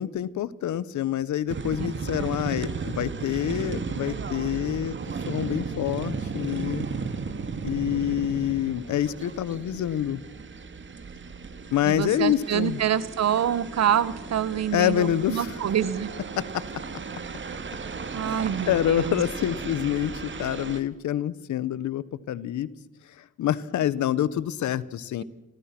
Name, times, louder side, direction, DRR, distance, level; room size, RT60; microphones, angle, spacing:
voice 1, 0.0-4.9 5.3-6.8 7.6-10.2 11.7-12.8 14.7-15.5 16.4-16.5 18.2-22.7 23.4-25.2, left 11 dB, 70° left, 18 dB, 1.3 m, -27 dB
Ext crossroads peoples cars birds, 1.5-20.8, right 5 dB, 40° right, 2.3 m, -35 dB
voice 2, 11.8-16.1 17.5-17.6 18.1-19.2, right 9 dB, 60° right, 16 dB, 1.5 m, -26 dB
29.0 x 23.0 x 6.2 m, 0.91 s
cardioid pair, 90°, 30 cm